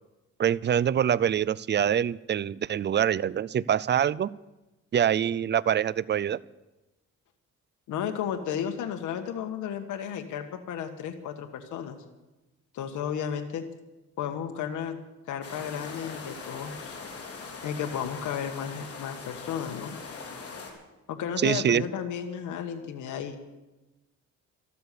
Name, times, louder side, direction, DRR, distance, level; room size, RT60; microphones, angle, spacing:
voice 1, 0.4-4.3 4.9-6.4 21.4-21.8, right 9 dB, 35° right, 21 dB, 0.5 m, -25 dB
voice 2, 7.9-12.0 12.7-13.6 14.2-15.0 15.3-17.0 17.6-20.0 21.1-23.4, left 8 dB, 80° left, 5 dB, 1.4 m, -33 dB
sound 1, 15.4-20.7, left 4 dB, 50° left, 4.2 m, -41 dB
13.5 x 12.5 x 6.8 m, 1.1 s
cardioid pair, 90°, 30 cm